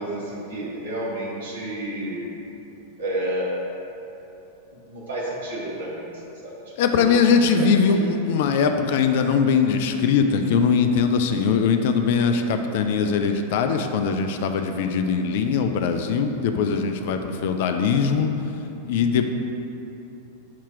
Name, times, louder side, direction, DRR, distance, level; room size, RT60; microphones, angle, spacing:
voice 1, 0.0-2.3 3.0-3.6 4.9-6.1 6.4-6.5 6.9-7.7 8.0-8.1, right 1 dB, 60° right, -5 dB, 1.4 m, -30 dB
voice 2, 6.8-18.3 18.9-19.2, left 6 dB, 50° left, 6 dB, 0.3 m, -21 dB
7.3 x 2.9 x 4.6 m, 3.0 s
figure-of-eight pair, 90°, 0 cm